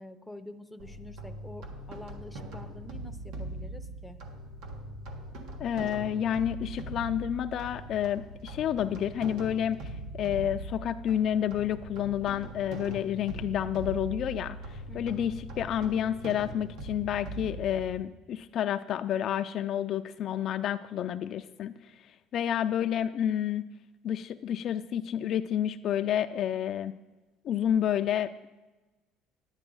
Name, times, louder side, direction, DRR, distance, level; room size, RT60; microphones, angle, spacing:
voice 1, 0.0-4.2 14.9-15.3, left 1 dB, 5° left, 7 dB, 0.6 m, -47 dB
sound 1, 0.8-18.0, right 1 dB, 75° right, 1.4 m, -41 dB
voice 2, 5.6-23.6 24.0-26.9 27.4-28.5, left 10 dB, 50° left, 9 dB, 0.3 m, -30 dB
11.0 x 9.0 x 3.8 m, 1.2 s
cardioid pair, 130°, 0 cm